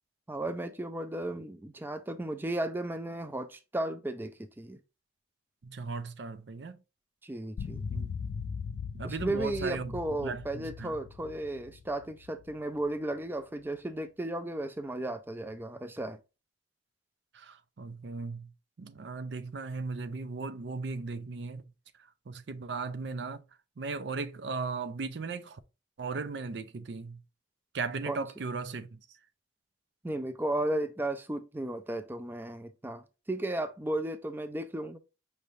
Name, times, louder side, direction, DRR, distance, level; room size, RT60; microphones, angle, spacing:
voice 1, 0.3-4.8 7.2-7.8 9.0-16.2 28.1-28.2 30.0-35.0, right 1 dB, 10° right, 0.4 m, -34 dB
voice 2, 5.6-6.8 7.9-8.1 8.9-11.0 17.3-18.5 18.8-21.6 22.3-23.4 23.8-25.6 26.0-27.2 27.7-29.0, right 4 dB, 70° right, 0.5 m, -37 dB
sound 1, 7.6-12.9, left 5 dB, 60° left, 0.3 m, -40 dB
5.5 x 3.2 x 2.6 m
head